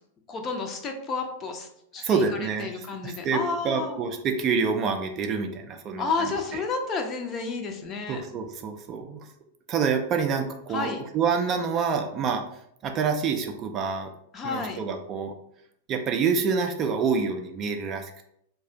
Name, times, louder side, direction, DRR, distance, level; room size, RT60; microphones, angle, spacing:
voice 1, 0.3-2.2 2.6-4.0 6.0-8.2 10.7-11.0 14.3-14.8, left 4 dB, 30° left, 4 dB, 0.5 m, -31 dB
voice 2, 2.0-6.6 8.1-9.3 9.7-12.4 12.8-14.1 14.4-15.3 15.9-18.3, right 5 dB, 30° right, 5 dB, 0.3 m, -27 dB
2.3 x 2.3 x 3.8 m, 0.73 s
figure-of-eight pair, 95°, 0 cm